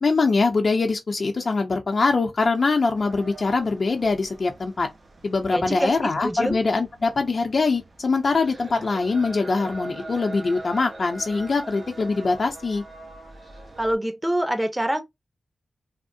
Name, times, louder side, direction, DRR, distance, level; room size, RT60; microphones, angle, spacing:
voice 1, 0.0-4.9 5.2-12.8, left 3 dB, 60° left, 0.6 m, -23 dB
sound 1, 2.9-14.0, right 2 dB, 55° right, 0.7 m, -42 dB
voice 2, 5.5-6.6 13.8-15.0, right 1 dB, 10° right, 0.8 m, -25 dB
3.5 x 2.0 x 2.5 m
wide cardioid pair, 65°, 0 cm